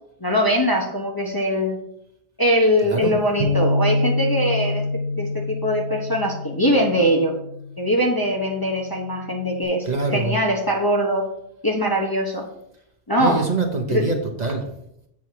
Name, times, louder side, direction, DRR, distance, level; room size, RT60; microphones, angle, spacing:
voice 1, 0.2-1.8 2.4-4.8 5.1-7.4 7.8-9.8 10.1-11.3 11.6-12.5 13.1-13.4 13.9-14.0, equal, 20° left, -1 dB, 0.9 m, -21 dB
voice 2, 2.8-3.2 9.9-10.4 13.2-14.7, right 3 dB, 40° right, 1 dB, 1.0 m, -24 dB
Bass guitar, 3.4-7.8 8.5-9.6, left 2 dB, 80° right, 1.5 m, -26 dB
7.2 x 5.4 x 4.6 m, 0.77 s
omnidirectional pair, 1.2 m